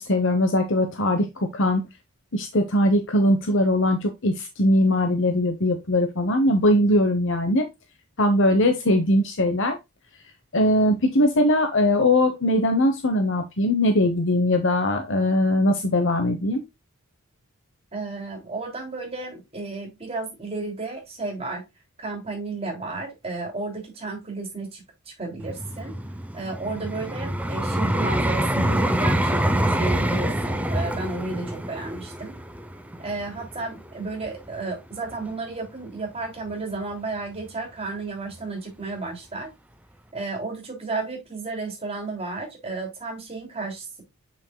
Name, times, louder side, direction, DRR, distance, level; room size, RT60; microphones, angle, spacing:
voice 1, 0.0-1.9 2.3-7.7 8.2-9.8 10.5-16.6, left 1 dB, 55° left, 6 dB, 1.0 m, -21 dB
voice 2, 17.9-21.6 22.0-25.9 26.3-32.4 33.0-39.5 40.1-44.0, right 3 dB, 25° right, 0 dB, 3.1 m, -32 dB
Vehicle, 25.4-34.5 35.1-35.3, right 1 dB, 5° right, 0.6 m, -26 dB
7.3 x 6.0 x 2.2 m, 0.22 s
head